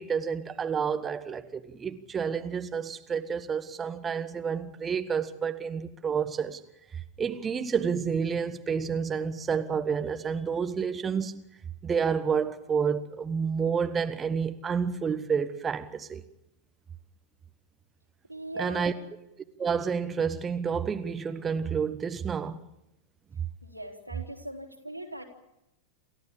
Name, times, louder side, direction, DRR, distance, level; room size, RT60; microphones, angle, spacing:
voice 1, 0.0-6.6 6.9-11.4 11.8-16.2 18.6-18.9 19.6-22.6, right 6 dB, 20° right, 1.2 m, -29 dB
voice 2, 18.3-18.9 23.6-25.2, right 1 dB, 90° right, 3.5 m, -40 dB
28.5 x 14.5 x 8.6 m
figure-of-eight pair, 90°, 0 cm